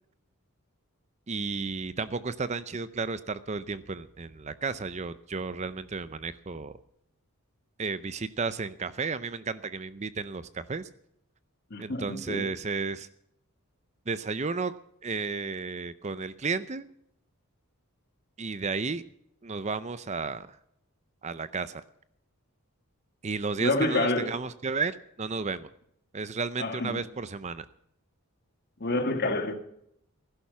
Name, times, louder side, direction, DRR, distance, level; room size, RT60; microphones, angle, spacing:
voice 1, 1.3-6.7 7.8-10.9 11.8-13.1 14.1-14.7 15.0-16.9 18.4-19.0 19.4-20.5 21.2-21.8 23.2-25.7 26.1-27.7, right 4 dB, 30° right, 0.6 m, -33 dB
voice 2, 11.7-12.5 23.6-24.4 26.6-27.0 28.8-29.5, left 2 dB, 45° left, 2.0 m, -28 dB
16.0 x 11.5 x 5.7 m
head